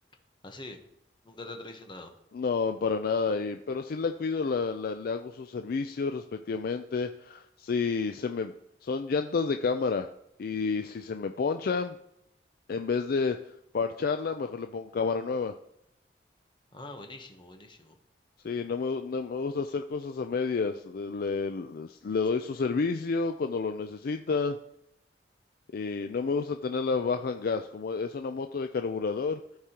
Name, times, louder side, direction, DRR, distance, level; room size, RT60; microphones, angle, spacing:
voice 1, 0.4-0.8 1.2-2.1 16.7-18.0, left 2 dB, 30° left, 4 dB, 1.0 m, -44 dB
voice 2, 2.3-8.5 8.8-10.1 10.4-12.0 12.7-13.4 13.7-15.5 18.4-24.6 25.7-29.4, left 4 dB, 60° left, 7 dB, 0.4 m, -30 dB
13.5 x 4.8 x 2.9 m, 0.80 s
head